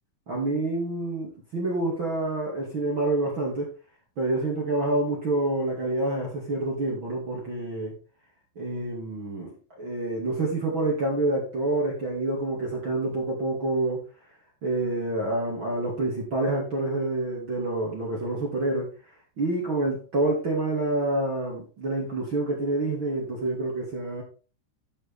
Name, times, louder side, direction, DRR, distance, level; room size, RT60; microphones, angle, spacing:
voice 1, 0.3-3.7 4.2-8.0 8.6-14.0 14.6-18.9 19.4-24.2, right 2 dB, 35° right, -3 dB, 2.1 m, -27 dB
12.5 x 5.4 x 4.2 m, 0.36 s
omnidirectional pair, 5.5 m